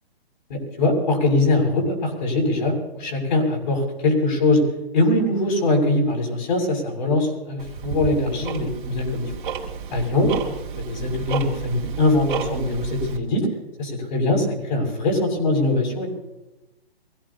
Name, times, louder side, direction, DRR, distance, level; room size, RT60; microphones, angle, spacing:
voice 1, 0.5-4.6 4.9-9.3 9.9-10.3 10.8-13.5 13.8-16.2, left 2 dB, 50° left, 1 dB, 6.8 m, -22 dB
Tick-tock, 7.6-13.2, right 6 dB, 50° right, 2.7 m, -31 dB
24.5 x 16.5 x 2.9 m, 1.0 s
hypercardioid pair, 145°, 31 cm